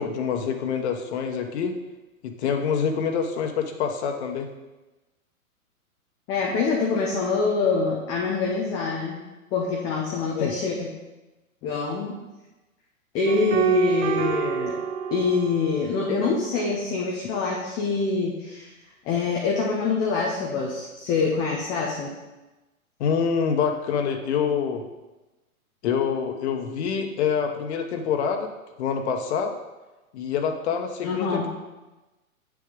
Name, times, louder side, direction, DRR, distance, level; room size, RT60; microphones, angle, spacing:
voice 1, 0.0-1.8 2.2-4.5 10.3-10.5 23.0-24.8 25.8-28.5 28.8-29.5 30.1-31.5, left 6 dB, 50° left, 4 dB, 1.1 m, -26 dB
voice 2, 6.3-9.1 9.5-10.9 11.6-12.2 13.1-14.8 15.1-18.7 19.1-22.1 31.0-31.5, left 4 dB, 10° left, -2 dB, 0.3 m, -25 dB
sound 1, 13.3-16.1, right 6 dB, 55° right, 1.2 m, -27 dB
7.6 x 7.0 x 5.2 m, 1.1 s
hypercardioid pair, 120°, 43 cm